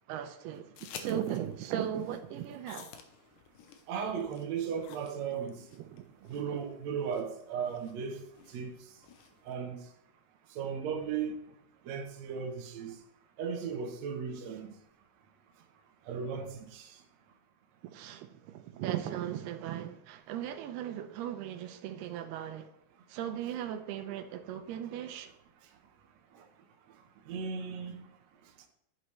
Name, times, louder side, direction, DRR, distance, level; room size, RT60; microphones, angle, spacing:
voice 1, 0.1-2.9 5.8-6.6 17.8-22.7 23.1-25.3, right 10 dB, 85° right, 2.7 m, -38 dB
sound 1, 0.8-9.5, left 7 dB, 70° left, 2.0 m, -52 dB
voice 2, 3.9-5.6 6.3-8.2 8.5-8.7 9.5-9.8 10.6-11.4 11.9-12.9 13.4-14.7 16.1-16.8 27.3-27.9, right 6 dB, 65° right, 1.8 m, -36 dB
10.5 x 8.0 x 3.3 m
omnidirectional pair, 4.6 m